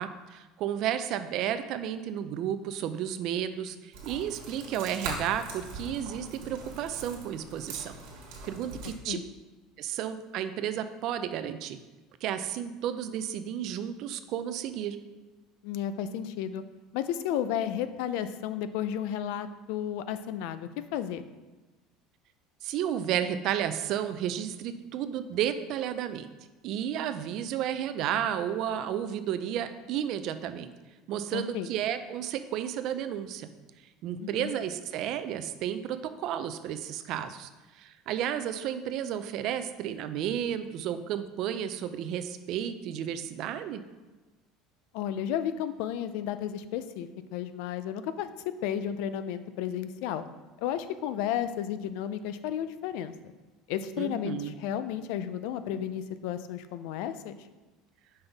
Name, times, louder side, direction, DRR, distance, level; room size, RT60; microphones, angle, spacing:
voice 1, 0.0-7.9 8.4-9.2 9.8-11.8 12.2-15.0 22.6-26.3 26.6-30.7 31.1-33.5 34.0-43.8 54.0-54.5, right 10 dB, 50° right, 10 dB, 0.4 m, -32 dB
sound 1, 3.9-8.9, right 2 dB, 75° right, 1.6 m, -41 dB
voice 2, 15.6-16.6 16.9-21.2 31.3-31.7 34.2-34.5 44.9-50.2 50.6-53.3 53.7-57.3, left 10 dB, 70° left, 12 dB, 0.4 m, -33 dB
5.4 x 5.4 x 3.4 m, 1.2 s
cardioid pair, 160°, 0 cm